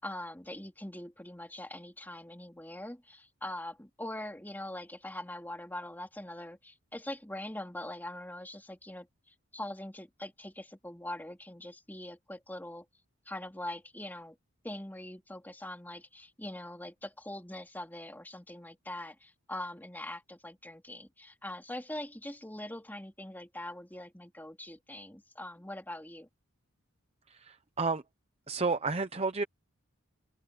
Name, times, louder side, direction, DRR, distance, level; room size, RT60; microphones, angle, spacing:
voice 1, 0.0-12.8 13.2-14.4 14.6-26.3, left 1 dB, 10° left, 3.2 m, -42 dB
voice 2, 27.3-28.0 28.5-29.4, right 4 dB, 30° right, 0.7 m, -31 dB
open air
head